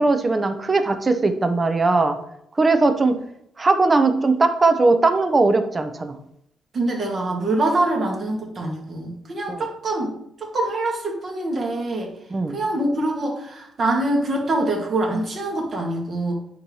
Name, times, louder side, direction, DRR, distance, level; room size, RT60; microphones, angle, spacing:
voice 1, 0.0-2.2 2.6-3.2 3.6-6.2 9.5-9.6 12.3-12.6, right 3 dB, 30° right, 8 dB, 0.9 m, -19 dB
voice 2, 6.7-10.1 10.4-12.1 12.5-16.3, right 2 dB, 45° right, -1 dB, 2.3 m, -24 dB
8.6 x 3.2 x 5.5 m, 0.75 s
cardioid pair, 90°, 0 cm